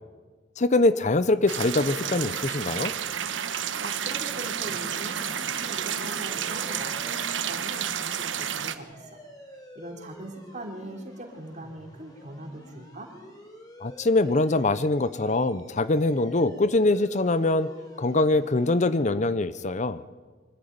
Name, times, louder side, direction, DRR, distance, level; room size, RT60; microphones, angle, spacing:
voice 1, 0.6-2.9 13.8-17.7 18.0-20.0, left 2 dB, 40° left, 15 dB, 0.7 m, -23 dB
sound 1, 1.5-8.8, right 8 dB, 90° right, 1.2 m, -31 dB
voice 2, 3.8-9.2 9.8-13.1, right 1 dB, 40° right, 3 dB, 3.4 m, -41 dB
sound 2, 4.6-19.0, equal, 20° left, 5.6 m, -49 dB
24.0 x 14.0 x 9.4 m, 1.4 s
head